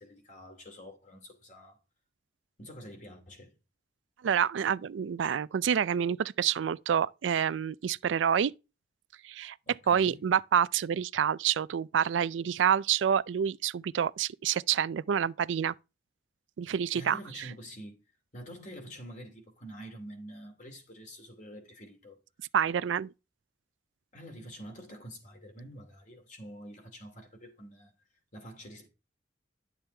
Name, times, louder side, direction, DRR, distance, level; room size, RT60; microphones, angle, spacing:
voice 1, 0.0-1.8 2.6-3.5 9.7-10.3 16.9-18.0 18.3-22.2 24.1-27.9 28.3-28.9, equal, 40° left, 2.5 m, -47 dB
voice 2, 4.2-8.5 9.2-9.6 9.9-15.7 16.6-17.2 22.5-23.1, right 8 dB, 85° right, 0.4 m, -28 dB
10.5 x 7.0 x 3.4 m
head